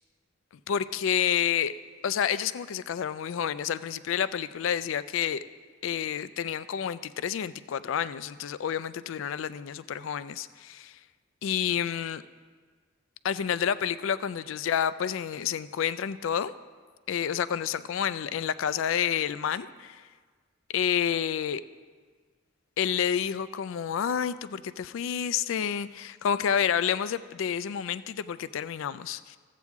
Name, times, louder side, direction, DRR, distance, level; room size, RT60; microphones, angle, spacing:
voice 1, 0.7-1.7 2.0-5.4 5.8-10.9 11.4-12.2 13.2-16.5 17.1-20.0 20.7-21.6 22.8-29.4, left 8 dB, 70° left, 15 dB, 0.3 m, -29 dB
14.0 x 8.4 x 3.6 m, 1.5 s
head